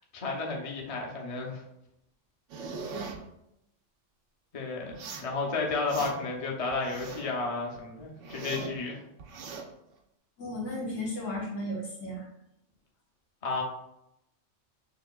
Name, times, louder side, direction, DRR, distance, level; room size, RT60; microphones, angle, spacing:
voice 1, 0.1-1.6 4.5-4.9 5.2-9.0 13.4-13.6, left 3 dB, 35° left, 0 dB, 0.7 m, -32 dB
sound 1, 2.5-3.2 4.9-5.3 5.7-6.4 6.7-7.4 7.8-8.8 9.2-9.6, right 4 dB, 85° right, 1.0 m, -40 dB
voice 2, 10.4-12.2, left 1 dB, 85° left, -4 dB, 1.7 m, -35 dB
6.4 x 2.8 x 2.3 m, 0.81 s
omnidirectional pair, 1.2 m